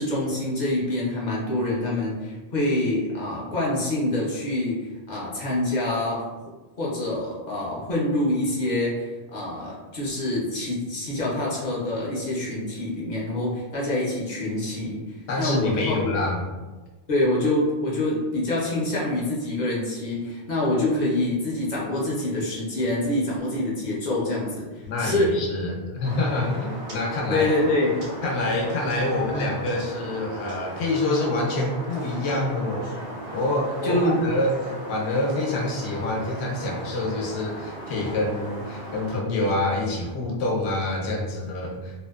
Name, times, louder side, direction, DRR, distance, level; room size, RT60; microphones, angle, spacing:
voice 1, 0.0-6.3 6.8-15.0 15.4-16.1 17.1-25.7 27.3-28.0 33.8-34.2, left 1 dB, 50° left, -5 dB, 0.7 m, -26 dB
voice 2, 15.3-16.5 24.8-27.5 28.2-33.0 33.3-41.9, left 2 dB, 75° left, -2 dB, 0.9 m, -26 dB
sound 1, 26.0-39.2, right 1 dB, 85° right, 0.9 m, -37 dB
2.7 x 2.1 x 2.3 m, 1.2 s
omnidirectional pair, 1.1 m